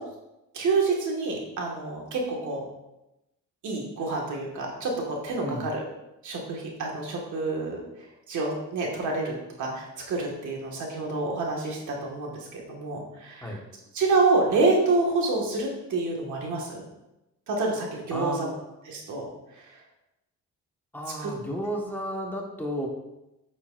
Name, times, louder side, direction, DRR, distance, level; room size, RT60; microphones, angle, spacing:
voice 1, 0.5-2.6 3.6-5.8 6.2-7.8 8.3-13.5 13.9-16.8 17.5-18.4 18.9-19.3 21.2-21.3, right 3 dB, 75° right, -1 dB, 1.8 m, -27 dB
voice 2, 18.1-18.7 20.9-22.9, equal, 5° left, -1 dB, 1.5 m, -33 dB
8.5 x 6.3 x 2.6 m, 0.93 s
cardioid pair, 90°, 30 cm